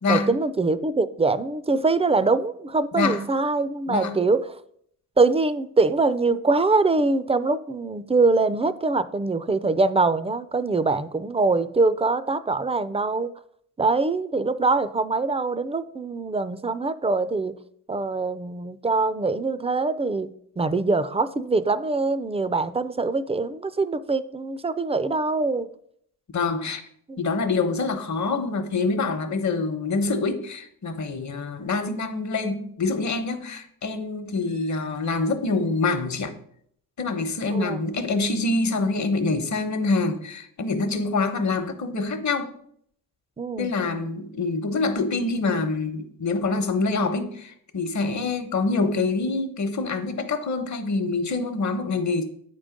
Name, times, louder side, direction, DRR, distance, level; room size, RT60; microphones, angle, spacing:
voice 1, 0.1-4.6 5.2-13.3 13.8-17.6 17.9-25.7 27.1-27.2 37.5-37.9 43.4-43.7, right 3 dB, 20° right, 0.4 m, -23 dB
voice 2, 3.9-4.2 26.3-26.8 27.2-36.3 37.0-42.5 43.6-52.2, left 3 dB, 55° left, 1.0 m, -25 dB
8.5 x 3.8 x 5.1 m
cardioid pair, 80°, 35 cm